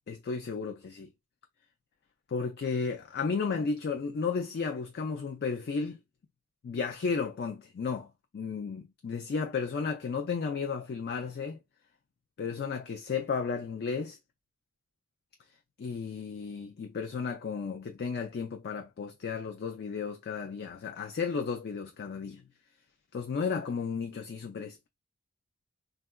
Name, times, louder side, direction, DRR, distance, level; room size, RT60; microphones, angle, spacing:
voice 1, 0.1-1.1 2.3-6.0 6.6-11.6 12.4-14.2 15.8-22.4 23.1-24.9, left 5 dB, 45° left, 0.3 m, -33 dB
3.5 x 2.3 x 2.2 m
head